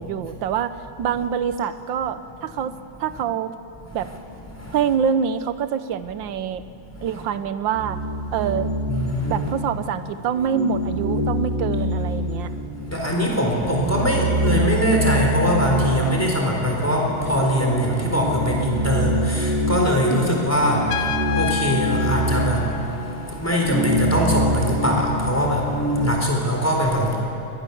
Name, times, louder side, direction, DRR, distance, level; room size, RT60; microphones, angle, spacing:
voice 1, 0.0-2.7 3.0-3.5 3.9-4.1 4.7-6.6 7.0-8.0 8.3-8.7 9.3-12.6 20.1-20.5, right 8 dB, 70° right, 12 dB, 1.5 m, -25 dB
voice 2, 6.8-7.2 8.9-9.5 12.2-27.2, equal, 5° left, -1 dB, 3.8 m, -22 dB
sound 1, 7.7-10.0 10.3-13.1 13.4-26.3, equal, 30° right, 4.0 m, -25 dB
Trumpet, 20.9-23.5, left 10 dB, 75° left, 1.5 m, -29 dB
24.0 x 18.0 x 7.1 m, 2.9 s
omnidirectional pair, 2.3 m